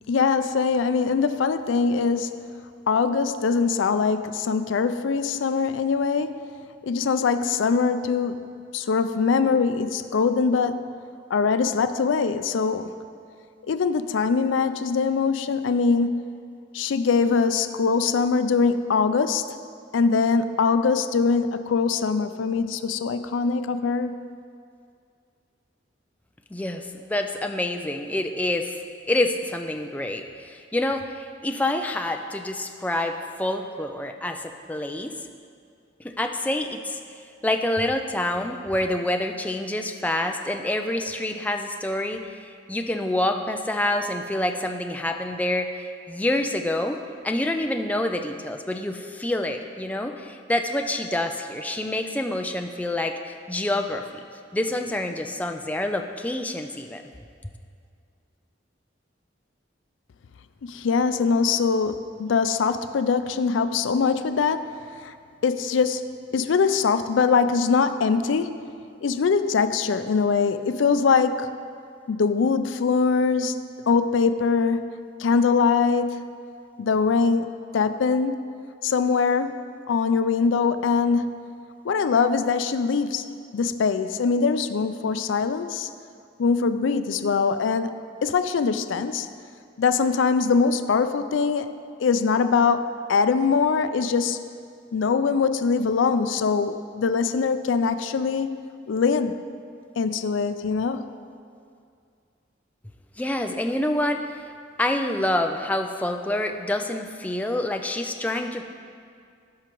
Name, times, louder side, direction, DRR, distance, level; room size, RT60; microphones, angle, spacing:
voice 1, 0.1-2.5 2.9-6.4 6.8-10.9 11.3-12.9 13.7-16.2 16.7-19.4 19.9-24.2 60.6-64.7 65.0-65.1 65.4-68.7 69.0-71.5 72.1-74.9 75.2-76.2 76.8-77.5 77.7-78.4 78.8-79.6 79.9-81.3 81.8-83.2 83.5-85.9 86.4-87.9 88.2-89.3 89.8-94.4 94.9-98.5 98.9-99.4 100.0-101.0, left 5 dB, 85° left, 11 dB, 0.4 m, -22 dB
voice 2, 26.5-28.8 29.1-35.1 36.0-37.0 37.4-47.0 47.2-54.0 54.5-57.0 103.2-104.4 104.8-108.6, left 1 dB, 10° left, 4 dB, 0.3 m, -27 dB
16.0 x 5.8 x 3.0 m, 2.3 s
head